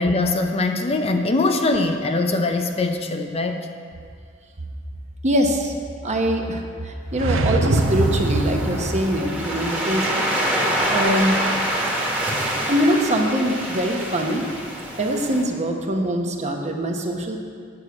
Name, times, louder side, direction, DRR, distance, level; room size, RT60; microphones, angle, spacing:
voice 1, 0.0-3.7, left 2 dB, 30° left, 5 dB, 0.6 m, -22 dB
voice 2, 5.2-5.7 6.0-10.1 10.9-11.4 12.7-14.5 15.0-17.4, equal, 35° right, 2 dB, 1.0 m, -23 dB
sound 1, 7.1-9.3, right 2 dB, 70° right, 0.7 m, -23 dB
Waves surf, 7.7-15.4, right 1 dB, 10° right, 1.5 m, -26 dB
8.9 x 6.3 x 8.3 m, 2.2 s
head